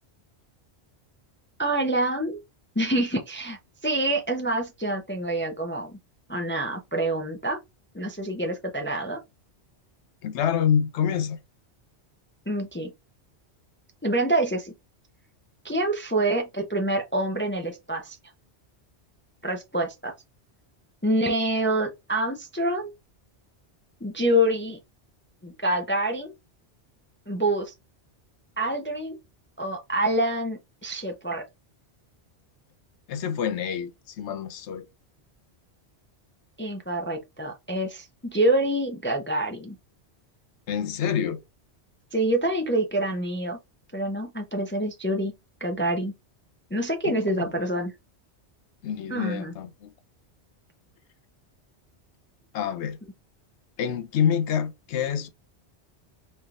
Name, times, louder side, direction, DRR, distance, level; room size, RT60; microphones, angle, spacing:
voice 1, 1.6-2.4 2.8-6.0 6.3-7.6 7.9-9.2 12.5-12.9 14.0-14.7 15.6-18.2 19.4-20.1 21.0-22.9 24.0-24.8 25.4-26.3 27.3-27.7 28.6-29.2 29.6-31.4 36.6-39.8 42.1-43.6 43.9-45.3 45.6-46.1 46.7-47.9 49.1-49.5, right 1 dB, 15° left, 0.4 m, -26 dB
voice 2, 10.2-11.4 33.1-34.9 40.7-41.4 47.1-47.5 48.8-49.9 52.5-53.0 53.8-55.3, left 8 dB, 85° left, 0.9 m, -27 dB
4.3 x 3.3 x 2.4 m
omnidirectional pair, 1.1 m